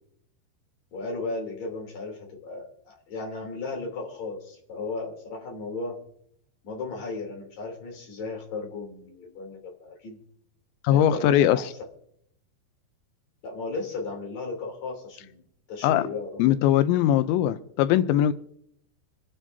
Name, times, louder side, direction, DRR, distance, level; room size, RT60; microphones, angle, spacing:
voice 1, 0.9-6.0 6.6-10.2 10.9-11.7 13.4-15.4 15.7-16.6, left 3 dB, 40° left, -1 dB, 4.0 m, -35 dB
voice 2, 10.8-11.6 15.8-16.0 16.4-18.3, left 11 dB, 90° left, 12 dB, 2.9 m, -21 dB
27.0 x 10.0 x 2.7 m, 0.73 s
omnidirectional pair, 5.1 m